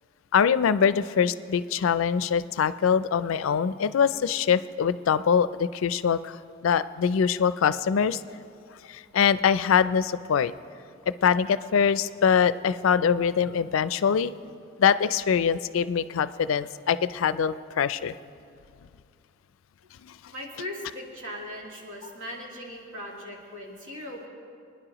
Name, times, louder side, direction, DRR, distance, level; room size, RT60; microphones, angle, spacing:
voice 1, 0.3-8.2 8.9-10.5 11.2-14.3 14.8-18.1 20.0-20.2, left 7 dB, 80° left, 15 dB, 0.4 m, -23 dB
voice 2, 20.3-24.3, left 1 dB, 80° right, -2 dB, 2.3 m, -39 dB
24.0 x 10.0 x 3.0 m, 2.4 s
head